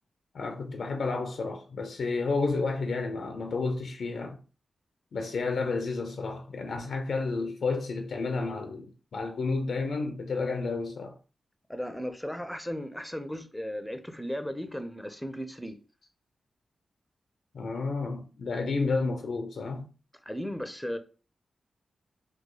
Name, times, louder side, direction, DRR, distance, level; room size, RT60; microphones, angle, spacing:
voice 1, 0.3-4.4 5.1-11.1 17.5-19.9, left 3 dB, 75° left, 0.4 m, -31 dB
voice 2, 11.7-15.8 20.3-21.0, equal, 5° left, 0.6 m, -36 dB
3.1 x 2.3 x 3.7 m
cardioid pair, 55°, 0 cm